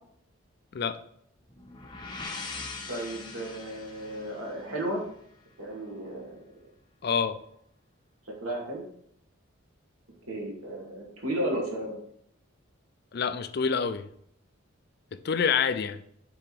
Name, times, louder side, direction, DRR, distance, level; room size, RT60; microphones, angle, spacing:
voice 1, 0.7-1.0 7.0-7.4 13.1-14.1 15.2-16.0, left 6 dB, 50° left, 0.4 m, -27 dB
sound 1, 1.5-5.3, left 3 dB, 20° left, 0.7 m, -42 dB
voice 2, 2.9-5.0 5.6-6.4 8.3-8.8 10.3-11.9, right 1 dB, 85° right, 2.3 m, -33 dB
6.8 x 3.9 x 4.7 m
head